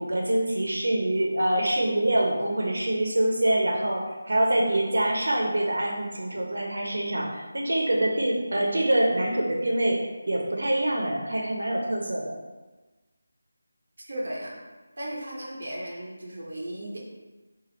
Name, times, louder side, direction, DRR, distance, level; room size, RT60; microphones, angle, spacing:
voice 1, 0.0-12.4, right 1 dB, 75° right, 0 dB, 0.9 m, -25 dB
voice 2, 14.1-14.5 15.0-17.0, right 1 dB, 50° right, -3 dB, 0.9 m, -35 dB
3.4 x 2.6 x 3.8 m, 1.2 s
figure-of-eight pair, 180°, 0 cm